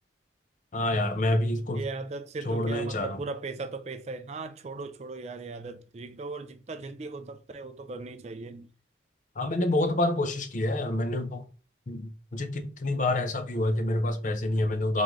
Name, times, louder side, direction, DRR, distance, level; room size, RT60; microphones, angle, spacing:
voice 1, 0.7-1.8 2.5-3.2 9.4-11.5 11.9-15.0, left 1 dB, 45° left, 0.5 m, -27 dB
voice 2, 1.7-8.7, right 3 dB, 35° right, 0.4 m, -38 dB
3.8 x 3.2 x 3.6 m
head